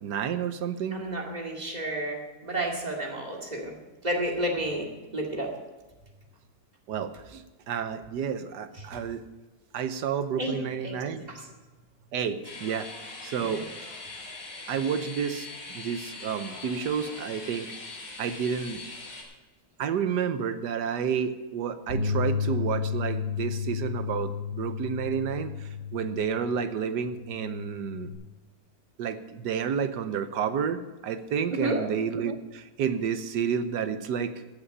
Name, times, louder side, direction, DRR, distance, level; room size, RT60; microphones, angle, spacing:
voice 1, 0.0-1.1 6.9-9.2 9.7-11.3 12.1-12.9 13.2-13.7 14.7-17.7 18.2-18.8 19.8-28.1 29.0-34.3, right 7 dB, 80° right, 10 dB, 1.4 m, -30 dB
voice 2, 0.9-3.7 4.0-4.9 5.1-5.5 10.4-10.6 10.8-11.4 13.4-13.6 31.5-31.8, right 1 dB, 25° right, 0 dB, 2.3 m, -31 dB
sound 1, 12.4-19.2, left 3 dB, 85° left, 4.1 m, -41 dB
Bass guitar, 21.9-28.1, left 6 dB, 50° right, 3.9 m, -32 dB
15.0 x 8.6 x 5.5 m, 1.2 s
omnidirectional pair, 1.8 m